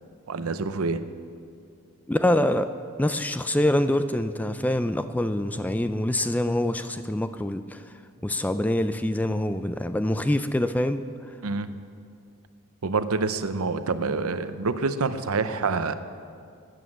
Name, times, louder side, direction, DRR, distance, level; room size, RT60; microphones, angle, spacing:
voice 1, 0.3-1.0 11.4-11.8 12.8-15.9, right 4 dB, 90° right, 11 dB, 0.7 m, -27 dB
voice 2, 2.1-2.7 3.0-7.8 8.2-11.0, left 1 dB, 5° left, 10 dB, 0.3 m, -25 dB
12.5 x 9.3 x 7.4 m, 2.3 s
head